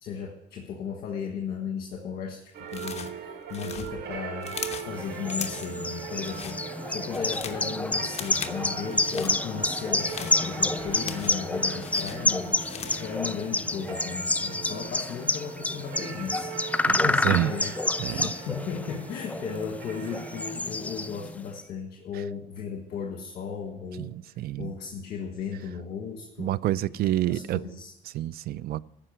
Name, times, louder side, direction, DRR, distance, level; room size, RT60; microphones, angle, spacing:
voice 1, 0.0-17.7 18.0-24.1 24.6-26.9 27.3-28.2, left 6 dB, 65° left, 3 dB, 1.4 m, -36 dB
sound 1, 2.5-20.5, right 7 dB, 80° right, 1.7 m, -41 dB
sound 2, 2.7-3.2 3.5-4.9 5.3-5.8 6.1-6.6 7.0-7.6 8.0-8.6 8.9-9.4 9.9-11.5 11.8-13.1, left 7 dB, 40° left, 1.0 m, -39 dB
sound 3, 4.9-21.4, left 2 dB, 10° left, 0.3 m, -29 dB
voice 2, 16.9-17.7 18.0-18.3 24.0-24.7 26.4-27.6 28.1-28.8, right 15 dB, 65° right, 21 dB, 0.4 m, -28 dB
13.5 x 5.5 x 9.4 m, 0.83 s
cardioid pair, 110°, 17 cm